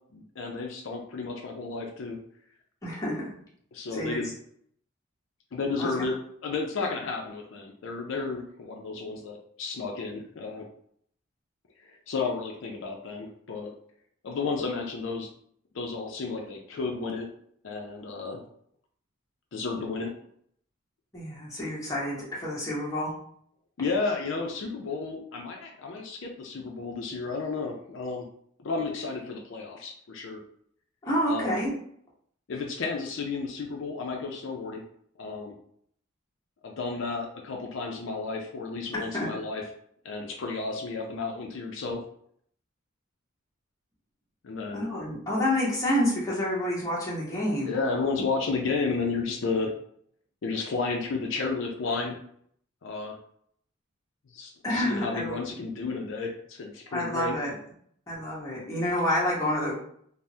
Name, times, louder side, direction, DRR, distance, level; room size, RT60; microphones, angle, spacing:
voice 1, 0.1-2.2 3.7-4.3 5.5-6.2 6.4-10.7 12.1-13.7 14.2-15.3 15.7-17.3 17.6-18.4 19.5-20.1 23.8-28.3 28.6-30.4 31.3-31.6 32.5-34.8 35.2-35.5 36.6-39.6 40.0-42.0 44.4-44.9 47.7-49.7 50.4-52.2 52.8-53.2 54.3-57.3, left 4 dB, 65° left, 1 dB, 0.4 m, -32 dB
voice 2, 2.8-3.3 3.9-4.2 5.8-5.9 21.1-23.1 31.0-31.7 38.9-39.3 44.7-47.7 54.6-55.4 56.9-57.6 58.1-59.7, left 1 dB, 15° left, -6 dB, 0.9 m, -28 dB
3.3 x 2.0 x 2.6 m, 0.64 s
head